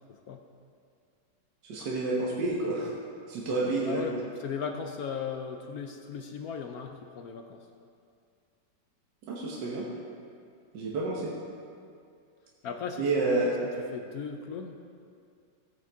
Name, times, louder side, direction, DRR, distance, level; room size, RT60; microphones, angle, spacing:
voice 1, 0.1-0.4 3.9-4.2 4.4-7.7 12.6-13.1 13.3-13.5 13.9-14.8, left 6 dB, 70° left, 5 dB, 1.0 m, -37 dB
voice 2, 1.6-2.9 3.3-4.2 9.2-9.9 10.7-11.3 13.0-13.5, right 2 dB, 75° right, -4 dB, 1.8 m, -29 dB
15.5 x 9.2 x 3.5 m, 2.4 s
omnidirectional pair, 1.9 m